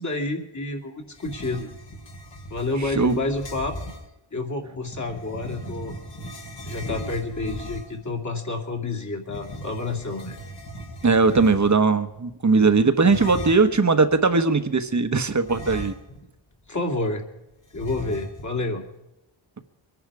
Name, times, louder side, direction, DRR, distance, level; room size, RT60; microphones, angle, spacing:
voice 1, 0.0-1.7 2.5-3.8 4.3-5.9 6.6-10.4 16.7-17.2 17.7-18.8, left 2 dB, 35° left, 1 dB, 2.6 m, -29 dB
sound 1, 1.1-4.1 4.9-8.1 9.2-11.9 13.0-13.8 15.4-16.4 16.7-16.8 17.7-18.6, equal, 60° left, 3.1 m, -37 dB
voice 2, 2.8-3.2 11.0-15.9, right 4 dB, 35° right, 9 dB, 1.2 m, -19 dB
24.0 x 11.0 x 4.9 m, 0.91 s
wide cardioid pair, 110°, 49 cm